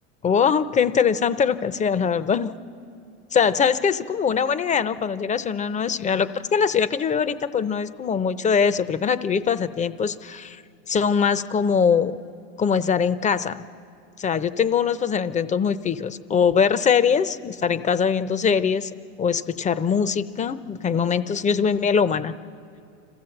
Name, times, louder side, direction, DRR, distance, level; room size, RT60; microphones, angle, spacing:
voice 1, 0.2-2.5 3.3-10.6 10.9-12.2 12.6-13.6 14.2-18.9 19.2-22.3, left 6 dB, 20° left, 14 dB, 0.6 m, -22 dB
26.0 x 15.5 x 7.8 m, 2.5 s
supercardioid pair, 115°, 39 cm